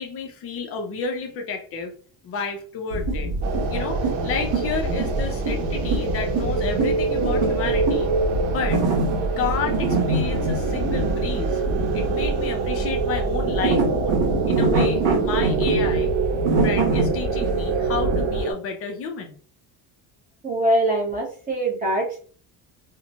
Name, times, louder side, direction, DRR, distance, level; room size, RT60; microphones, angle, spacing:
voice 1, 0.0-1.9 2.2-3.3 3.7-8.1 8.4-8.8 9.4-11.6 11.9-14.2 14.5-16.1 16.6-19.4, left 5 dB, 30° left, 3 dB, 0.4 m, -30 dB
sound 1, 2.9-18.4, right 2 dB, 70° right, 1.0 m, -25 dB
sound 2, 3.4-18.5, right 5 dB, 90° right, 0.8 m, -26 dB
voice 2, 20.4-22.2, right 1 dB, 15° right, -3 dB, 0.7 m, -23 dB
2.8 x 2.1 x 2.7 m, 0.41 s
cardioid pair, 170°, 47 cm